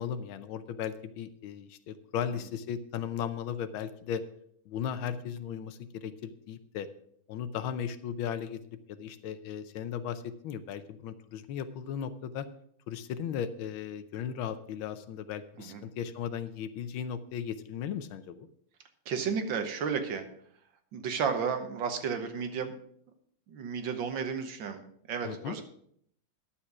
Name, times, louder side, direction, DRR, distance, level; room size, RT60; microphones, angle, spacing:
voice 1, 0.0-4.2 4.7-6.9 7.3-8.6 8.9-12.5 12.9-18.5 25.2-25.6, left 8 dB, 75° left, 12 dB, 1.5 m, -36 dB
voice 2, 19.1-20.2 20.9-22.7 23.5-25.6, right 6 dB, 65° right, 7 dB, 1.7 m, -33 dB
11.0 x 7.1 x 6.0 m, 0.67 s
omnidirectional pair, 2.3 m